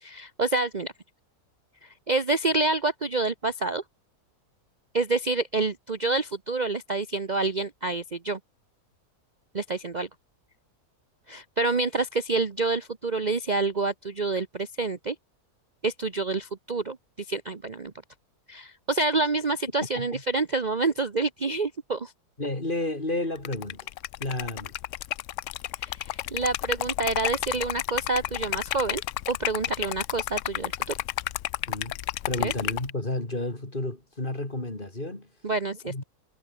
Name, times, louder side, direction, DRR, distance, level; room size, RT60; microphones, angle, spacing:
voice 1, 0.0-0.9 1.8-3.8 4.9-8.4 9.5-10.1 11.3-15.1 15.8-17.9 18.5-22.1 25.8-29.0 29.3-30.9 32.4-32.5 35.4-36.0, right 3 dB, 30° right, 1.1 m, -28 dB
voice 2, 22.4-23.9 24.2-24.7 31.7-32.0 32.3-35.3 35.8-36.0, left 2 dB, 30° left, 4.2 m, -31 dB
Liquid, 23.4-32.9, left 14 dB, 70° left, 0.8 m, -32 dB
omnidirectional pair, 1.6 m